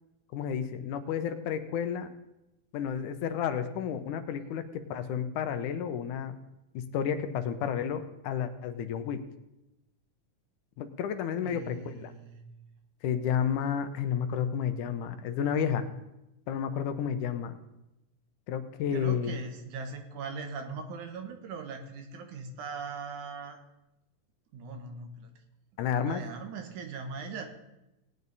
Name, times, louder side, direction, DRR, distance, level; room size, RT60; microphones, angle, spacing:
voice 1, 0.3-2.1 2.7-6.4 6.7-9.2 10.8-12.1 13.0-15.9 16.5-17.6 18.5-19.4 25.8-26.2, left 8 dB, 80° left, 9 dB, 2.3 m, -31 dB
voice 2, 11.4-12.4 18.9-23.6 24.5-25.3 25.9-27.5, right 4 dB, 75° right, 5 dB, 2.8 m, -40 dB
18.5 x 9.3 x 4.1 m, 0.93 s
omnidirectional pair, 3.6 m